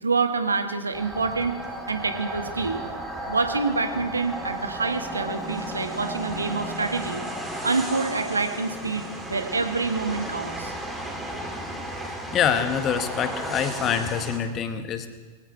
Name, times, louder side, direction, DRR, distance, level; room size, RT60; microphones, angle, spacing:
voice 1, 0.0-1.6 1.9-2.8 3.3-7.2 7.6-10.7, right 4 dB, 75° right, 7 dB, 1.5 m, -27 dB
sound 1, 0.9-14.4, right 1 dB, 5° right, 2.4 m, -34 dB
voice 2, 12.3-15.2, left 8 dB, 30° left, 9 dB, 1.3 m, -25 dB
22.5 x 16.0 x 3.3 m, 1.5 s
figure-of-eight pair, 90°, 0 cm